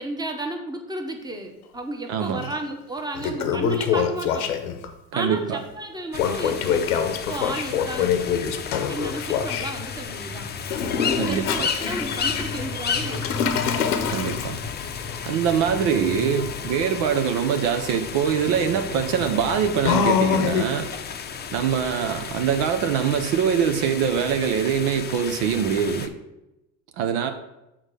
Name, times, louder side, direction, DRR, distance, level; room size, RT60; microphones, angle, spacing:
voice 1, 0.0-4.5 5.1-6.9 7.3-10.5 11.0-13.4, right 1 dB, 10° right, 4 dB, 1.1 m, -33 dB
voice 2, 2.1-2.4 5.1-5.6 11.2-11.5 14.1-14.6 15.3-20.9 21.5-26.1 27.0-27.3, right 7 dB, 65° right, 7 dB, 0.8 m, -23 dB
Toilet flush, 2.4-2.5 3.0-4.9 6.1-9.7 10.6-20.9, left 7 dB, 85° left, 0.8 m, -26 dB
sound 1, 6.1-26.1, left 6 dB, 25° left, 0.6 m, -33 dB
6.3 x 3.9 x 6.2 m, 0.93 s
hypercardioid pair, 80°, 43 cm